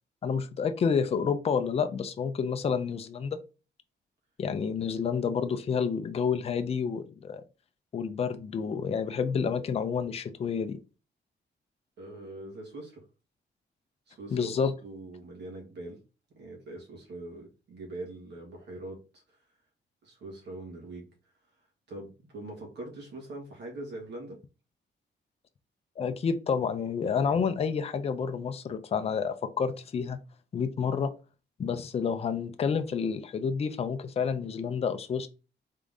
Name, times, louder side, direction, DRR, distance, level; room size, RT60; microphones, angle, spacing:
voice 1, 0.2-3.4 4.4-7.4 7.9-10.8 14.3-14.7 26.0-30.2 30.5-31.1 31.6-35.3, left 6 dB, 35° left, 9 dB, 0.4 m, -29 dB
voice 2, 12.0-13.1 14.1-16.0 16.3-19.4 20.0-21.1 21.9-24.4, right 2 dB, 65° right, 0 dB, 1.8 m, -42 dB
3.7 x 3.7 x 3.6 m, 0.32 s
wide cardioid pair, 175°, 19 cm